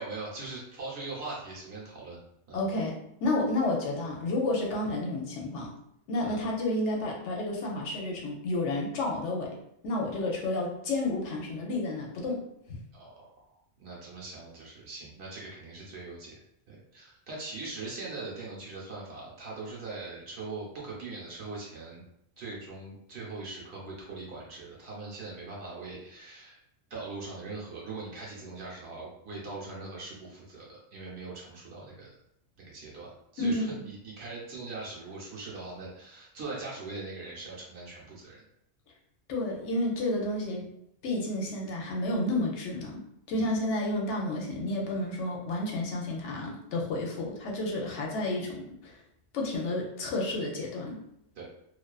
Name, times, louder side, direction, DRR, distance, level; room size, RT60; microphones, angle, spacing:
voice 1, 0.0-2.2 2.5-2.6 6.2-6.4 12.9-13.3 13.8-16.3 16.7-22.1 22.4-26.6 26.9-32.2 32.6-38.4 43.3-43.5 51.4-51.5, right 3 dB, 60° right, -4 dB, 1.0 m, -41 dB
voice 2, 2.5-5.7 6.1-9.6 9.8-12.4 12.7-12.8 33.4-33.9 39.3-40.6 41.0-43.0 43.3-48.9 49.3-51.0, left 2 dB, 70° left, -1 dB, 0.9 m, -31 dB
2.4 x 2.3 x 2.2 m, 0.75 s
omnidirectional pair, 1.3 m